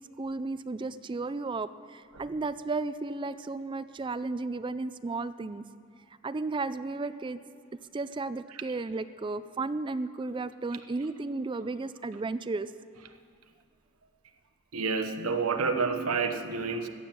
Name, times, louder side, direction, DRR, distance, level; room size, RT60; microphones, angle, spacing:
voice 1, 0.2-5.6 6.2-7.4 7.9-12.7, right 3 dB, 20° right, 14 dB, 0.4 m, -34 dB
voice 2, 14.7-16.9, right 4 dB, 80° right, 6 dB, 0.9 m, -29 dB
14.5 x 9.3 x 7.3 m, 2.3 s
head